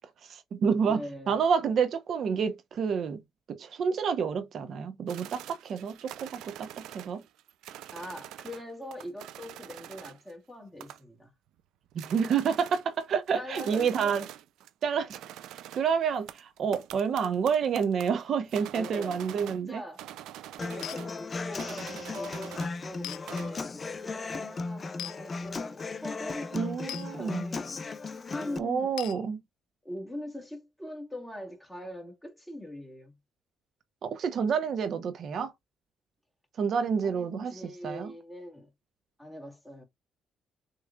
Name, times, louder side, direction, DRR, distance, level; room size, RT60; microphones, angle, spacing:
voice 1, 0.2-3.2 3.5-7.2 11.9-14.2 14.8-15.2 15.7-19.8 26.5-27.4 28.6-29.4 34.0-35.5 36.6-38.1, right 6 dB, 60° right, 0.8 m, -29 dB
voice 2, 0.8-1.4 7.9-11.3 13.3-14.3 18.7-20.1 20.7-27.7 28.3-28.9 29.8-33.2 37.0-38.7 39.2-39.8, left 1 dB, 5° left, 2.4 m, -42 dB
sound 1, 5.1-8.6 8.9-10.3 10.8-11.2 11.6-11.7 11.9-14.8 15.1-19.7 20.0-21.2 21.6-22.8 23.1-23.6, right 12 dB, 85° right, 0.5 m, -45 dB
Human voice / Acoustic guitar, 20.6-28.6, left 3 dB, 35° left, 0.6 m, -36 dB
sound 2, 20.8-21.0 23.0-23.2 25.0-25.2 26.9-27.1 29.0-29.2, left 14 dB, 85° left, 0.4 m, -38 dB
6.5 x 3.1 x 2.4 m
cardioid pair, 90°, 0 cm